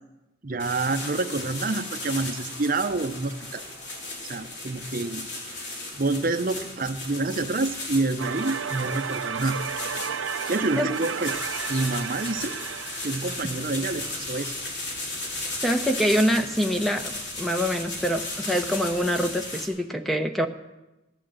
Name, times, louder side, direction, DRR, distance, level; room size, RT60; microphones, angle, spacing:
voice 1, 0.4-3.6 4.2-5.3 5.9-9.6 10.5-11.3 11.7-12.6 13.0-14.5, right 3 dB, 45° right, 9 dB, 0.7 m, -27 dB
sound 1, 0.6-19.7, left 2 dB, 60° left, 3.4 m, -36 dB
sound 2, 8.2-15.1, right 7 dB, 90° right, 0.6 m, -33 dB
voice 2, 15.6-20.5, equal, ahead, 6 dB, 0.8 m, -25 dB
17.0 x 11.0 x 7.7 m, 1.0 s
head